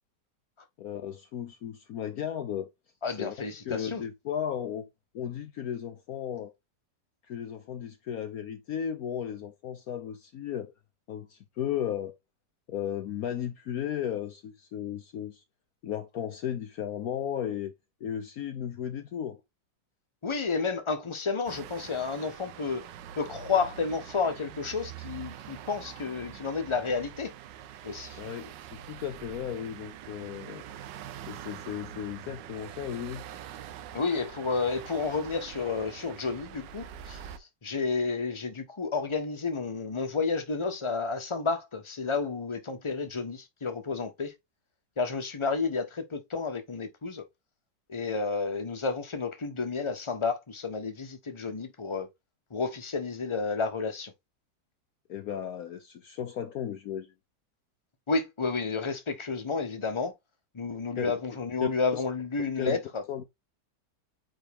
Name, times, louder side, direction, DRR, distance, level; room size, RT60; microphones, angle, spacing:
voice 1, 0.8-2.7 3.2-3.3 3.6-4.9 5.1-6.5 7.3-10.7 11.1-12.2 12.7-15.4 15.8-17.7 18.0-19.4 28.2-30.7 31.3-33.2 55.1-57.1 61.0-61.1 61.6-62.0 62.6-62.8 63.1-63.2, left 9 dB, 65° left, 1.0 m, -35 dB
voice 2, 3.0-4.0 20.2-22.9 23.2-27.3 27.8-28.2 33.9-37.2 37.6-44.3 45.0-47.2 47.9-52.1 52.5-54.1 58.1-60.1 60.5-63.0, left 4 dB, 20° left, 0.9 m, -31 dB
sound 1, 21.5-37.4, right 10 dB, 80° right, 1.4 m, -44 dB
9.0 x 3.6 x 3.5 m
omnidirectional pair, 1.9 m